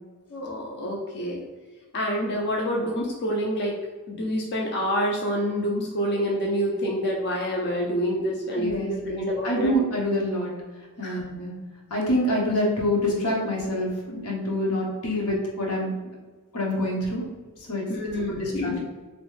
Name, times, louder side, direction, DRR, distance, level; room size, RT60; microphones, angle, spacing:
voice 1, 0.3-1.4 1.9-3.8 4.1-9.7 11.0-11.2 17.9-18.8, equal, 50° left, -1 dB, 0.5 m, -27 dB
voice 2, 8.6-10.5 11.0-11.5 11.9-15.9 16.5-17.2 17.7-17.8 18.3-18.8, left 1 dB, 90° left, -3 dB, 1.1 m, -26 dB
3.4 x 3.0 x 3.2 m, 1.3 s
head